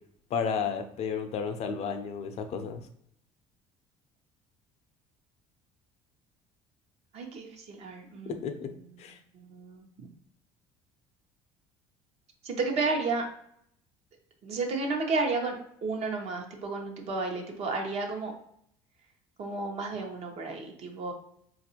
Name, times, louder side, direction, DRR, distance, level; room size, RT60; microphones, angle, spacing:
voice 1, 0.3-2.8 8.4-8.7 9.0-9.2, left 6 dB, 55° left, 7 dB, 0.5 m, -32 dB
voice 2, 7.1-8.4 9.3-10.1 12.4-13.2 14.4-18.3 19.4-21.1, right 3 dB, 55° right, 2 dB, 0.9 m, -32 dB
4.0 x 2.5 x 2.8 m, 0.69 s
supercardioid pair, 95°, 13 cm